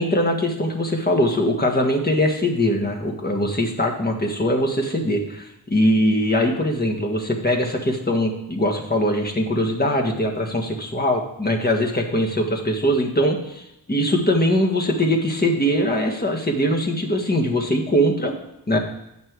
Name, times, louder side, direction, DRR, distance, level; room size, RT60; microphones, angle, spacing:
voice 1, 0.0-18.3 18.7-18.8, equal, 25° left, 1 dB, 1.7 m, -21 dB
9.2 x 6.1 x 4.7 m, 0.85 s
cardioid pair, 70°, 39 cm